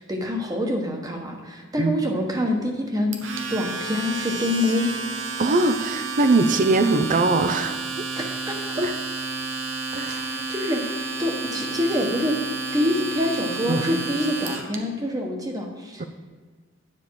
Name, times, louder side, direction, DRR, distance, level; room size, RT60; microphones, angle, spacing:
voice 1, 0.1-3.2 3.5-4.9 8.1-8.8 10.0-12.4 12.7-16.1, left 1 dB, 20° right, 2 dB, 1.3 m, -26 dB
Domestic sounds home sounds, 3.1-14.8, right 4 dB, 70° right, 1.0 m, -31 dB
voice 2, 5.4-7.8 8.8-8.9 9.9-10.5 13.7-14.0 16.0-16.1, right 3 dB, 45° right, 10 dB, 0.6 m, -21 dB
9.7 x 7.0 x 4.7 m, 1.5 s
head